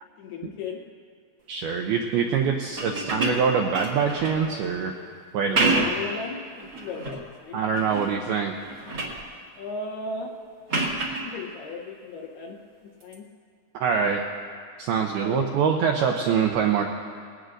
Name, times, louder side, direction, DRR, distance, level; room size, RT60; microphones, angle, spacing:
voice 1, 0.2-0.8 3.0-3.4 5.5-7.6 9.6-10.3 11.2-13.3 15.2-15.5, left 4 dB, 75° left, 0 dB, 2.6 m, -36 dB
voice 2, 1.5-5.0 5.3-5.9 7.5-8.6 13.7-14.2 14.8-16.8, right 6 dB, 85° right, 2 dB, 2.2 m, -24 dB
sound 1, 2.7-4.4 5.3-6.1 6.6-7.2 7.7-8.2 8.5-9.2 10.7-11.3 13.0-13.1, right 3 dB, 60° right, 1.1 m, -28 dB
20.5 x 17.0 x 2.6 m, 2.1 s
omnidirectional pair, 5.2 m